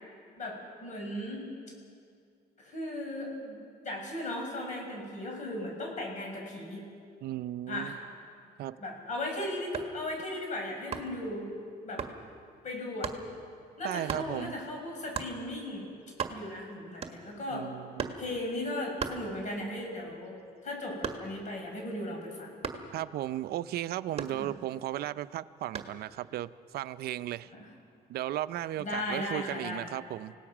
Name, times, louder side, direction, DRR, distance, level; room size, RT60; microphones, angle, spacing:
voice 1, 0.4-1.4 2.6-6.8 7.7-7.9 8.8-11.5 11.8-12.0 12.6-13.1 13.8-15.9 16.3-17.7 18.2-20.4 20.6-22.6 24.3-24.5 27.5-27.7 28.8-29.9, left 1 dB, 45° left, 1 dB, 6.4 m, -37 dB
voice 2, 7.2-8.0 8.6-8.8 13.8-14.5 17.5-18.2 22.9-27.5 28.1-30.3, right 13 dB, 65° right, 14 dB, 0.6 m, -35 dB
sound 1, 9.6-10.0 10.9-11.3 12.0-12.2 13.0-13.3 14.1-14.3 15.1-15.4 15.8-16.6 17.0-17.4 18.0-18.3 19.0-19.7 20.1-21.5 22.6-23.0 24.2-24.8 25.8-26.0, right 6 dB, 35° right, 1.7 m, -37 dB
27.5 x 18.0 x 6.1 m, 2.4 s
cardioid pair, 110°, 17 cm